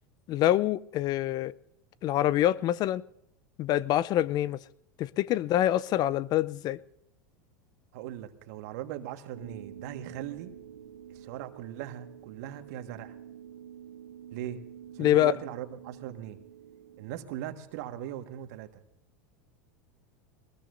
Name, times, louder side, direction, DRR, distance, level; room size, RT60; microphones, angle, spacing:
voice 1, 0.3-1.5 2.0-3.0 3.6-4.6 5.0-6.8 15.0-15.3, left 13 dB, 45° left, 0.6 m, -25 dB
voice 2, 7.9-10.5 11.1-13.1 14.3-14.6 14.9-16.4 17.0-18.8, right 11 dB, 65° right, 1.7 m, -39 dB
sound 1, 9.3-17.3, right 9 dB, 90° right, 1.8 m, -48 dB
22.0 x 20.0 x 2.6 m
hypercardioid pair, 90°, 9 cm